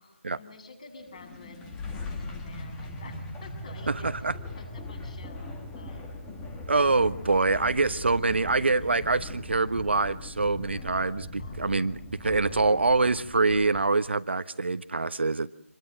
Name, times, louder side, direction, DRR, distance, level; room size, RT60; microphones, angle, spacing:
voice 1, 0.0-1.6 1.9-4.1 4.6-6.1 7.2-7.8 11.4-11.9 12.2-12.9, left 3 dB, 30° left, 6 dB, 7.1 m, -50 dB
sound 1, 1.0-14.1, left 2 dB, 5° left, 1.6 m, -40 dB
voice 2, 3.9-4.3 6.7-15.5, right 3 dB, 50° right, 11 dB, 1.2 m, -25 dB
27.5 x 22.5 x 7.7 m, 0.63 s
figure-of-eight pair, 170°, 8 cm